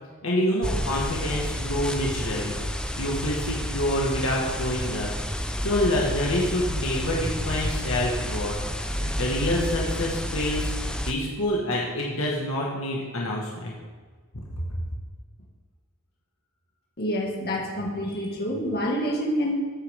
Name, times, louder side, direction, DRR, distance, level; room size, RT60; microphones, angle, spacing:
voice 1, 0.2-2.5 3.0-5.1 5.6-8.5 9.0-10.7 11.1-13.7, left 1 dB, 65° left, -3 dB, 1.8 m, -27 dB
sound 1, 0.6-11.1, equal, 5° left, 0.6 m, -30 dB
voice 2, 17.0-19.6, equal, 45° left, -2 dB, 2.2 m, -27 dB
14.0 x 8.5 x 3.7 m, 1.5 s
head